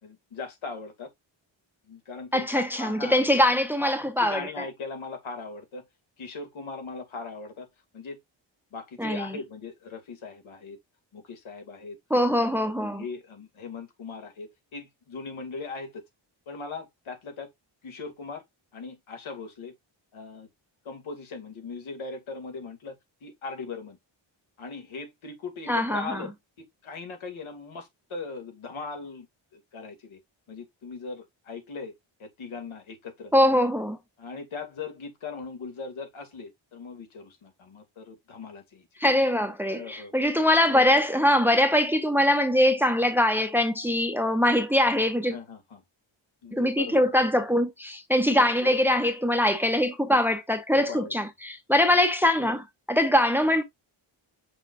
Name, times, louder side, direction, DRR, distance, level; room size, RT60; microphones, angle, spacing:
voice 1, 0.0-1.1 1.9-3.2 4.2-5.9 6.2-7.7 7.9-8.2 8.7-10.8 11.1-12.0 12.4-16.0 16.5-17.5 17.8-18.4 18.7-19.7 20.1-20.5 20.8-23.0 23.2-24.0 24.6-26.3 26.6-29.3 29.5-30.2 30.5-31.9 32.2-33.3 34.2-38.9 39.7-40.3 45.3-45.8 46.4-47.1 48.3-48.5 50.7-51.1, left 4 dB, 80° left, 2.6 m, -39 dB
voice 2, 2.3-4.5 9.0-9.4 12.1-13.0 25.7-26.2 33.3-34.0 39.0-45.4 46.5-53.6, left 1 dB, 5° right, 0.8 m, -23 dB
6.4 x 6.1 x 2.5 m
wide cardioid pair, 175°, 48 cm